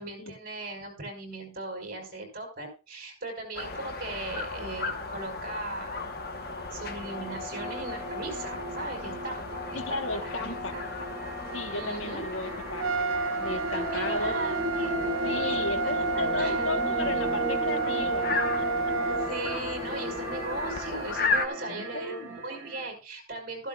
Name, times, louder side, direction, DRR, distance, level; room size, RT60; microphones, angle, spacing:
voice 1, 0.0-6.0 6.7-10.8 11.7-12.3 13.7-15.2 15.5-15.6 16.1-16.7 19.1-23.7, right 2 dB, 45° right, 2 dB, 4.8 m, -38 dB
sound 1, 3.6-21.5, left 3 dB, 50° left, 1.2 m, -36 dB
sound 2, 6.0-22.9, equal, 10° right, 2.8 m, -37 dB
voice 2, 9.7-10.8 11.5-14.4 15.2-18.7 21.6-22.4, left 3 dB, 75° left, 8 dB, 1.3 m, -35 dB
Trumpet, 12.8-19.3, right 4 dB, 75° right, 0.8 m, -30 dB
14.0 x 12.0 x 2.4 m, 0.31 s
head